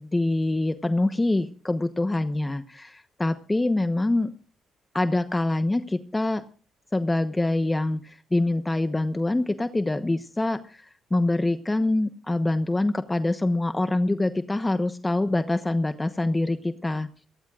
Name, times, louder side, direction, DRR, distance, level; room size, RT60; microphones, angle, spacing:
voice 1, 0.0-4.3 4.9-6.4 6.9-17.1, left 2 dB, 15° left, 9 dB, 1.0 m, -25 dB
29.0 x 18.5 x 2.5 m, 0.39 s
cardioid pair, 90°, 0 cm